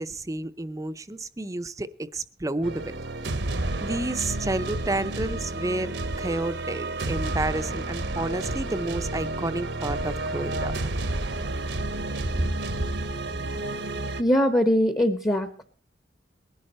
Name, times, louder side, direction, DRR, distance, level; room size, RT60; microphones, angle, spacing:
voice 1, 0.0-2.9 3.8-10.7 12.4-12.5, right 2 dB, 20° right, 12 dB, 0.6 m, -30 dB
sound 1, 2.6-14.2, right 2 dB, 70° right, 1.0 m, -31 dB
voice 2, 14.2-15.6, equal, 20° left, 9 dB, 0.9 m, -22 dB
20.0 x 11.0 x 4.2 m, 0.40 s
head